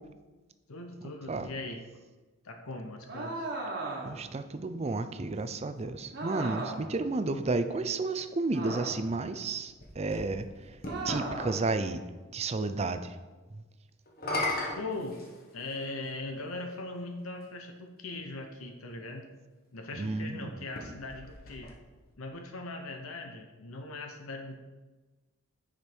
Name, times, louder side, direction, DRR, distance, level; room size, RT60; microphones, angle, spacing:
voice 1, 0.7-1.8 2.4-3.5 14.8-15.2 15.5-19.3 19.7-21.8 22.2-24.5, left 2 dB, 70° left, 4 dB, 0.8 m, -40 dB
sound 1, 3.1-4.3 6.1-7.0 8.5-9.2 10.8-11.6, right 2 dB, 50° right, 1.4 m, -37 dB
voice 2, 4.0-10.5 11.0-12.0 12.3-13.2 20.0-20.5, right 3 dB, 30° right, 10 dB, 0.4 m, -32 dB
sound 2, 9.4-11.3 14.1-15.8 16.8-16.9 20.6-22.1, left 1 dB, 45° left, 1.4 m, -37 dB
9.9 x 5.1 x 4.5 m, 1.2 s
head